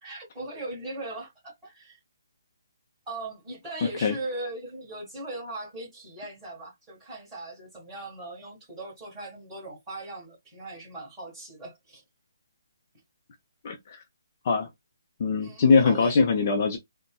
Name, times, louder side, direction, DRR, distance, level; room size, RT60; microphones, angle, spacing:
voice 1, 0.0-2.0 3.1-12.0 15.4-16.2, right 2 dB, 10° right, 1.8 m, -39 dB
voice 2, 3.8-4.1 13.6-14.0 14.4-14.7 15.2-16.8, left 4 dB, 35° left, 0.5 m, -22 dB
4.0 x 2.1 x 2.2 m
hypercardioid pair, 170°, 2 cm